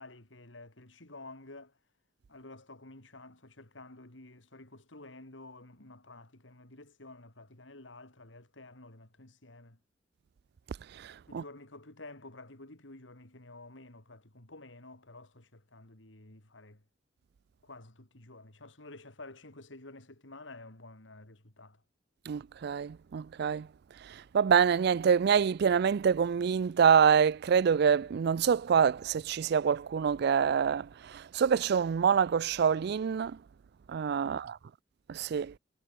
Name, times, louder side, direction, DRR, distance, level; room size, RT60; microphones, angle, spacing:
voice 1, 0.0-1.7 2.3-9.8 11.3-16.8 17.6-21.8 34.2-34.5, left 2 dB, 90° left, 3.7 m, -51 dB
voice 2, 11.0-11.4 22.3-23.7 24.3-33.4 33.9-34.5 35.1-35.5, right 7 dB, 60° right, 0.4 m, -26 dB
head